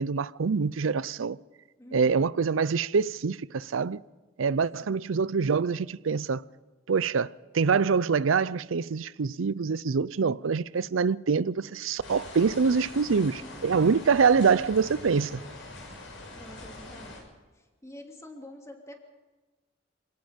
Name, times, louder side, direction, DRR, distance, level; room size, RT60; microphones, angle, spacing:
voice 1, 0.0-1.4 1.9-4.0 4.4-6.4 6.9-7.3 7.5-15.4, right 5 dB, 90° right, 0.5 m, -25 dB
voice 2, 1.8-2.3 4.8-5.0 13.2-13.9 16.3-17.2 17.8-18.9, left 1 dB, 15° left, 3.0 m, -47 dB
sound 1, 12.0-17.2, left 2 dB, 75° left, 6.8 m, -43 dB
28.0 x 17.5 x 5.2 m
head